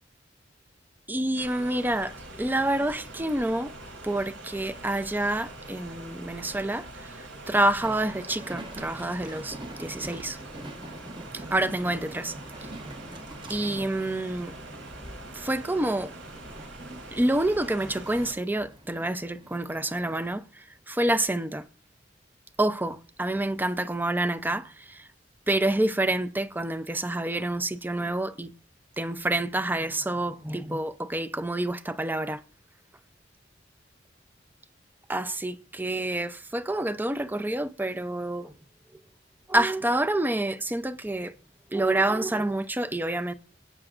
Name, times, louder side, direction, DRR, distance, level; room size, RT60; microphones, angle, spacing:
voice 1, 1.1-3.7 4.0-7.1 7.5-10.4 11.3-12.3 13.5-14.5 15.4-16.1 17.1-20.4 20.9-21.6 22.6-25.0 25.5-28.5 29.0-32.4 35.1-38.5 39.5-41.3 41.7-43.3, right 1 dB, 10° right, 0.6 m, -28 dB
sound 1, 1.4-18.3, right 2 dB, 75° right, 3.0 m, -44 dB
Train, 7.8-20.3, right 1 dB, 25° right, 1.0 m, -44 dB
24.5 x 8.9 x 2.5 m
head